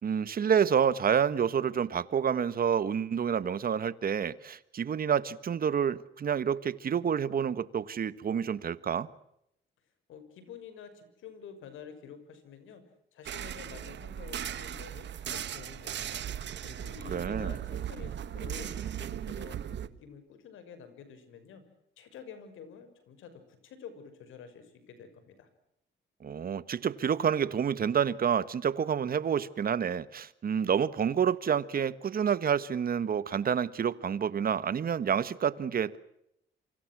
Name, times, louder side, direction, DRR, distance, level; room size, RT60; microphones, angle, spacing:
voice 1, 0.0-9.1 17.1-17.5 26.2-36.0, right 7 dB, 45° right, 1.5 m, -28 dB
voice 2, 10.1-12.8 13.1-16.2 16.6-21.6 22.0-25.5, left 7 dB, 80° left, 6.2 m, -49 dB
sound 1, 13.3-19.9, right 10 dB, 65° right, 1.4 m, -37 dB
28.0 x 25.0 x 6.2 m
cardioid pair, 90°, 20 cm